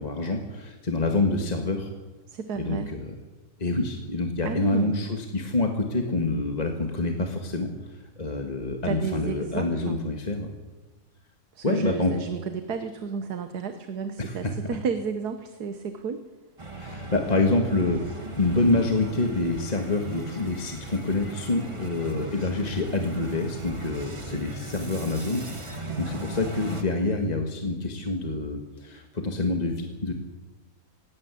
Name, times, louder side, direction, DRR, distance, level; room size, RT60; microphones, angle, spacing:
voice 1, 0.0-1.9 2.6-3.1 3.6-10.5 11.6-12.1 14.2-14.5 16.7-30.1, left 2 dB, 25° left, 3 dB, 1.8 m, -27 dB
voice 2, 2.3-2.9 4.4-4.9 8.8-10.0 11.5-16.2 25.9-26.3, right 6 dB, 80° right, 8 dB, 1.7 m, -32 dB
sound 1, 16.6-26.8, right 1 dB, 20° right, 1.8 m, -38 dB
18.5 x 17.5 x 8.4 m, 1.2 s
omnidirectional pair, 1.7 m